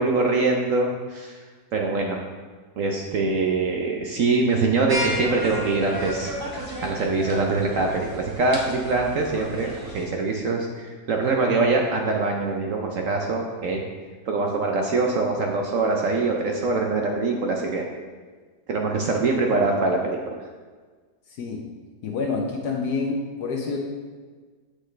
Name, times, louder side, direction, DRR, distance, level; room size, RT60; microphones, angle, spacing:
voice 1, 0.0-1.4 1.7-2.2 2.8-6.3 6.8-9.7 9.9-13.8 14.3-17.8 18.7-20.4, right 3 dB, 60° right, 1 dB, 0.9 m, -23 dB
sound 1, 4.9-10.0, equal, 20° right, 0.7 m, -33 dB
voice 2, 21.3-21.6 22.0-23.8, left 4 dB, 70° left, 0 dB, 1.3 m, -28 dB
7.7 x 6.5 x 3.2 m, 1.5 s
omnidirectional pair, 1.9 m